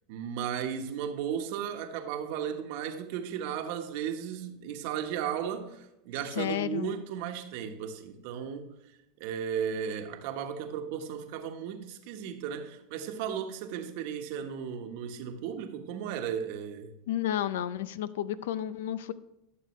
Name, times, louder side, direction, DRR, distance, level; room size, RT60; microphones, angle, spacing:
voice 1, 0.1-8.7 9.2-16.9, right 8 dB, 65° right, 1.2 m, -35 dB
voice 2, 6.3-6.9 17.1-19.1, left 11 dB, 80° left, 0.5 m, -31 dB
13.0 x 6.7 x 3.2 m
supercardioid pair, 115°, 0 cm